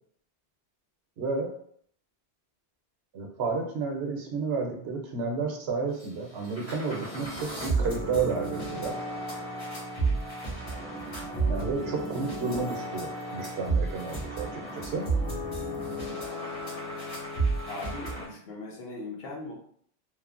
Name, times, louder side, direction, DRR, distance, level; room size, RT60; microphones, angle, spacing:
voice 1, 1.2-1.5 3.1-9.0 11.5-15.1, right 4 dB, 75° right, 2 dB, 0.8 m, -31 dB
sound 1, 6.0-6.1 6.4-18.3, right 2 dB, 40° left, 1.6 m, -32 dB
voice 2, 17.7-19.5, left 3 dB, 65° left, -1 dB, 0.9 m, -39 dB
3.0 x 2.0 x 2.4 m, 0.63 s
omnidirectional pair, 1.1 m